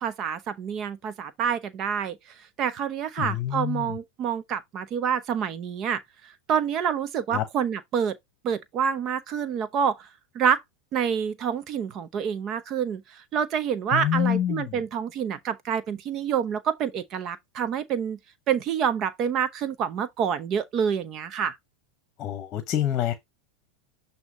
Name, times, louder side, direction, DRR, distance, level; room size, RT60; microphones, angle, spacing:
voice 1, 0.0-2.2 2.6-6.0 6.5-8.1 8.4-10.1 10.3-10.6 10.9-18.2 18.5-21.6, right 7 dB, 40° right, 0.8 m, -27 dB
voice 2, 3.2-4.0 7.3-7.5 13.9-14.8 22.2-23.1, left 11 dB, 35° left, 1.1 m, -27 dB
8.0 x 2.9 x 5.0 m
supercardioid pair, 125°, 0 cm